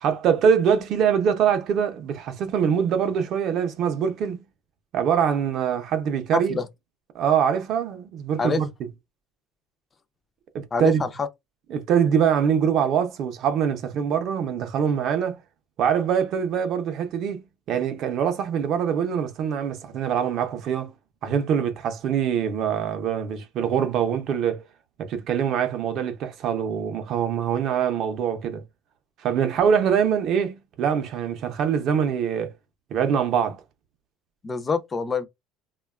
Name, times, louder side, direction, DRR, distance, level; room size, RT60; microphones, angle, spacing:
voice 1, 0.0-4.5 4.9-6.6 7.1-8.7 10.5-11.0 11.7-15.4 15.8-21.0 21.2-24.6 25.0-28.6 29.2-32.5 32.9-33.6, right 8 dB, 50° right, 0.4 m, -24 dB
voice 2, 6.3-6.7 8.4-8.6 10.7-11.3 34.4-35.3, left 4 dB, 20° left, 0.3 m, -26 dB
2.8 x 2.1 x 2.2 m
cardioid pair, 145°, 0 cm